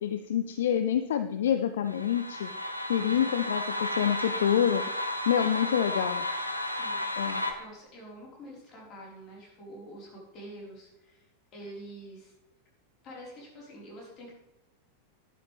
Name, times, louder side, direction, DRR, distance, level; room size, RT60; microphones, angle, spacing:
voice 1, 0.0-2.5 2.9-4.8 5.3-6.2 7.2-7.4, left 9 dB, 60° left, 10 dB, 0.5 m, -27 dB
sound 1, 1.9-7.5, left 1 dB, 90° left, 1.1 m, -33 dB
voice 2, 3.0-3.3 6.6-11.3 11.5-12.3 13.0-14.3, right 1 dB, 35° left, -3 dB, 4.6 m, -47 dB
11.5 x 10.5 x 3.5 m, 0.96 s
figure-of-eight pair, 90°, 0 cm